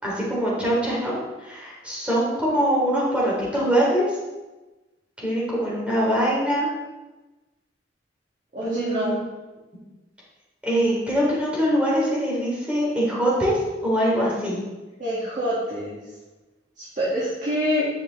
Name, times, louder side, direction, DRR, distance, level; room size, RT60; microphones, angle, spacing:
voice 1, 0.0-4.1 5.2-6.7 8.6-9.1 10.6-14.6, equal, 5° right, -6 dB, 3.1 m, -23 dB
voice 2, 8.5-9.2 15.0-16.0 16.8-17.8, equal, 45° right, -8 dB, 2.2 m, -26 dB
10.5 x 6.6 x 3.4 m, 1.1 s
head